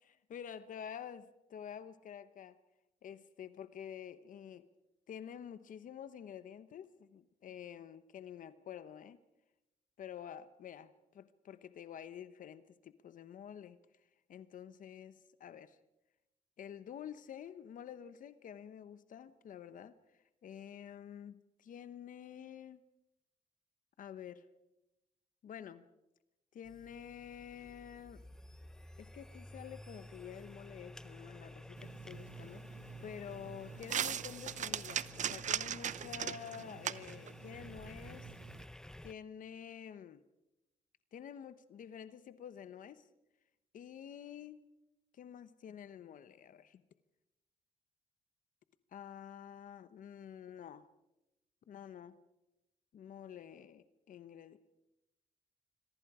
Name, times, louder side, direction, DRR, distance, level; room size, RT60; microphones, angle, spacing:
voice 1, 0.1-2.6 3.0-4.7 5.1-9.2 10.0-13.8 14.3-15.8 16.6-22.8 24.0-24.4 25.4-25.9 26.5-28.2 29.0-38.3 39.0-40.2 41.1-43.1 43.7-44.6 45.1-46.8 48.9-50.9 51.7-52.2 52.9-54.6, left 9 dB, 70° left, 1.0 m, -49 dB
sound 1, 26.6-39.1, left 1 dB, 5° left, 0.7 m, -52 dB
sound 2, 31.8-38.6, right 9 dB, 60° right, 0.7 m, -41 dB
26.5 x 23.5 x 4.9 m
cardioid pair, 115°, 14 cm